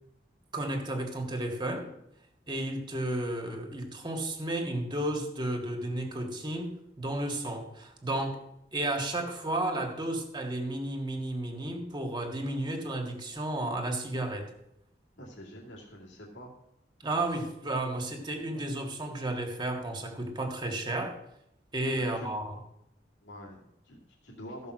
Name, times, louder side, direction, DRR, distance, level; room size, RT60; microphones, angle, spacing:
voice 1, 0.5-1.9 2.5-8.4 8.7-14.5 17.0-21.2 21.7-22.6, right 1 dB, 25° right, 3 dB, 1.7 m, -33 dB
voice 2, 15.2-16.5 21.9-22.3 23.2-24.7, equal, 85° left, -5 dB, 2.5 m, -46 dB
15.0 x 5.4 x 6.3 m, 0.78 s
head